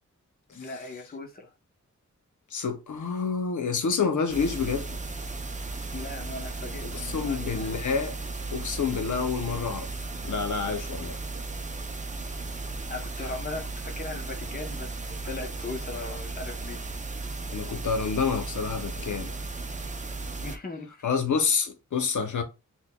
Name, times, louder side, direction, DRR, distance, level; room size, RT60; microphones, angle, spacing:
voice 1, 0.5-1.5 5.9-7.8 12.9-16.8 20.4-21.1, left 3 dB, 30° left, 0.8 m, -39 dB
voice 2, 2.5-5.0 6.8-8.1 8.5-9.9 10.2-11.2 17.5-19.4 21.0-22.4, left 5 dB, 75° left, 0.8 m, -28 dB
sound 1, 4.3-20.6, right 3 dB, 25° right, 0.5 m, -35 dB
6.0 x 2.3 x 2.2 m
wide cardioid pair, 75°, 30 cm